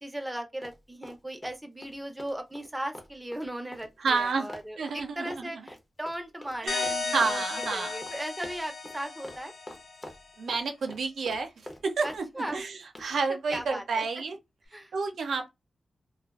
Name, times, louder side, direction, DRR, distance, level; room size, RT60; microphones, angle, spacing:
voice 1, 0.0-9.5 12.0-12.6 13.5-14.1 14.7-14.9, right 1 dB, 10° right, 0.6 m, -37 dB
Run, 0.6-1.5 1.8-6.6 6.8-7.4 7.6-8.2 8.4-9.0 9.2-9.4 9.7-10.6 10.9-12.2 12.5-13.1 13.5-13.7, left 1 dB, 25° left, 0.7 m, -45 dB
voice 2, 4.0-4.5 4.8-5.5 6.6-8.0 10.4-11.5 11.8-12.3 12.5-14.4 14.9-15.5, right 4 dB, 80° right, 0.5 m, -30 dB
sound 1, 6.7-10.1, left 3 dB, 70° left, 0.5 m, -34 dB
2.4 x 2.2 x 2.3 m
cardioid pair, 80°, 0 cm